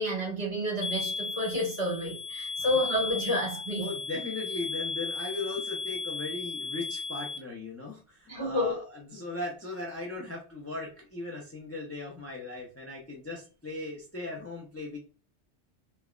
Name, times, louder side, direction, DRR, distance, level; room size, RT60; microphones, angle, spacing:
voice 1, 0.0-3.9 8.3-8.8, left 1 dB, 60° right, 1.7 m, -30 dB
sound 1, 0.8-7.4, left 4 dB, 40° left, 0.8 m, -35 dB
voice 2, 3.8-15.0, left 3 dB, 20° left, 0.4 m, -38 dB
3.3 x 2.1 x 2.3 m
omnidirectional pair, 1.1 m